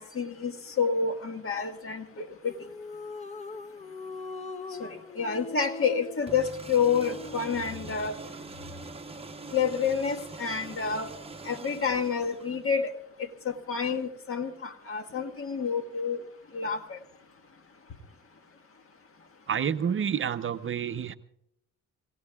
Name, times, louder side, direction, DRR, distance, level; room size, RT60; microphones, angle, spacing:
voice 1, 0.0-2.5 4.8-8.1 9.5-11.1 11.4-12.9 13.2-16.2 16.5-17.0, left 6 dB, 45° left, 7 dB, 1.7 m, -29 dB
sound 1, 2.4-7.8, left 4 dB, 20° left, 0.8 m, -41 dB
sound 2, 6.3-12.8, right 3 dB, 20° right, 0.9 m, -44 dB
voice 2, 19.5-21.1, right 8 dB, 45° right, 10 dB, 0.7 m, -29 dB
28.0 x 18.0 x 2.4 m, 0.78 s
cardioid pair, 90°, 30 cm